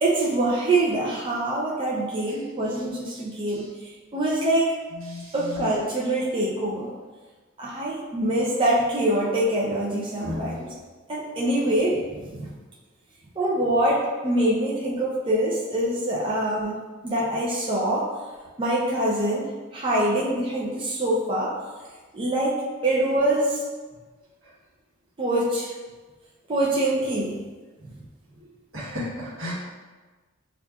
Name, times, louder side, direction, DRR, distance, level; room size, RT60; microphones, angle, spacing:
voice 1, 0.0-4.7 5.3-6.9 7.6-10.7 11.1-12.0 12.4-12.5 13.4-18.1 18.6-21.5 22.1-22.6 22.8-23.6 25.2-25.7 26.5-27.4, right 1 dB, 25° right, -5 dB, 0.5 m, -24 dB
voice 2, 5.0-5.7 10.2-10.7 16.2-16.3 28.7-29.5, left 2 dB, 70° right, -6 dB, 1.3 m, -34 dB
6.9 x 2.4 x 2.3 m, 1.3 s
head